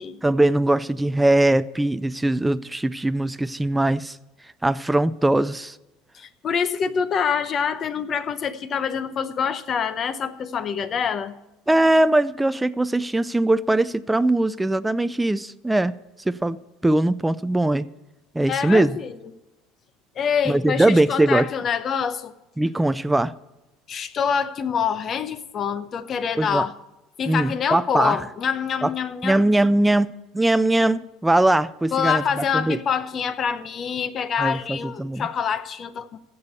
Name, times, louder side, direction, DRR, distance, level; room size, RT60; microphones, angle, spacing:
voice 1, 0.2-4.2 4.6-5.8 11.7-15.9 16.3-16.6 16.8-17.9 18.3-19.0 20.5-21.5 22.6-23.3 26.4-26.6 27.3-28.2 28.8-28.9 29.2-32.2 32.5-32.8 34.4-35.3, right 1 dB, 5° right, 0.3 m, -21 dB
voice 2, 6.1-11.3 18.5-19.1 20.2-22.3 23.9-26.7 27.2-29.4 31.9-36.2, left 7 dB, 35° left, 0.8 m, -26 dB
15.0 x 6.9 x 6.6 m
cardioid pair, 140°, 0 cm